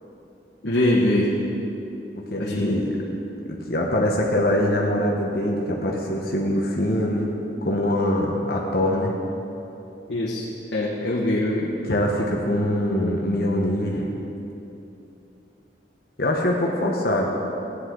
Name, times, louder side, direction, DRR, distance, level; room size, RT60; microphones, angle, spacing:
voice 1, 0.6-1.3 2.4-2.7 10.1-10.4 10.7-11.7, left 1 dB, 80° left, -6 dB, 1.4 m, -22 dB
voice 2, 2.3-2.9 3.5-7.3 7.6-9.2 11.8-14.0 16.2-17.3, left 1 dB, 60° left, -1 dB, 1.0 m, -23 dB
15.5 x 9.7 x 3.8 m, 3.0 s
head